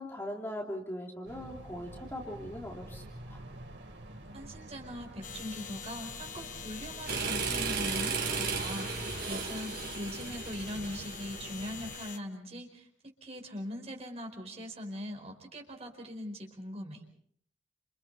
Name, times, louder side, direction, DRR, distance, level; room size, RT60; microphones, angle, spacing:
voice 1, 0.0-3.0 3.3-3.4, equal, 10° left, -1 dB, 3.0 m, -40 dB
sound 1, 1.3-12.0, right 1 dB, 75° right, 4.4 m, -48 dB
voice 2, 4.3-17.0, left 1 dB, 35° right, 2 dB, 4.9 m, -41 dB
sound 2, 5.2-12.2, left 7 dB, 40° left, 1.3 m, -45 dB
sound 3, 7.1-11.9, right 5 dB, 55° right, 4.0 m, -35 dB
29.5 x 28.5 x 4.2 m, 0.66 s
head